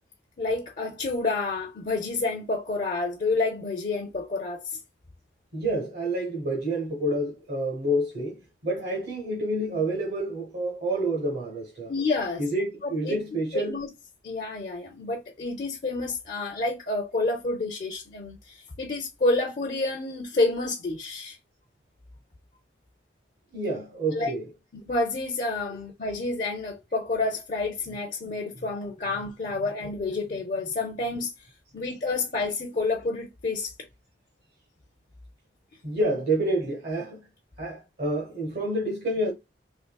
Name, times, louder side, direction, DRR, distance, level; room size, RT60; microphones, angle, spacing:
voice 1, 0.4-4.8 11.9-12.4 12.8-13.2 13.5-13.9 14.2-21.4 24.1-24.3 24.8-31.3 31.7-33.7, left 3 dB, 45° left, 0.5 m, -29 dB
voice 2, 5.5-11.9 12.4-13.9 23.5-24.5 25.7-25.8 29.1-29.2 35.8-37.3 37.6-39.3, right 1 dB, 55° right, 0.8 m, -28 dB
3.6 x 3.0 x 2.2 m
head